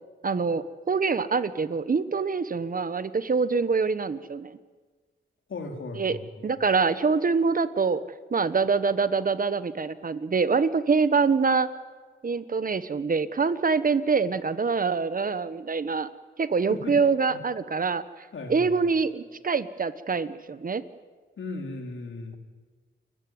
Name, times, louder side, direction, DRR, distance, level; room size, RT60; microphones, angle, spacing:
voice 1, 0.2-4.5 5.9-6.2 6.4-8.0 8.3-11.7 12.2-16.1 16.4-20.8, right 5 dB, 45° right, 14 dB, 1.1 m, -25 dB
voice 2, 5.5-6.3 16.7-16.9 17.3-17.4 18.3-18.7 21.4-22.4, left 3 dB, 75° left, 3 dB, 4.2 m, -36 dB
29.5 x 15.0 x 9.6 m, 1.4 s
wide cardioid pair, 90°, 20 cm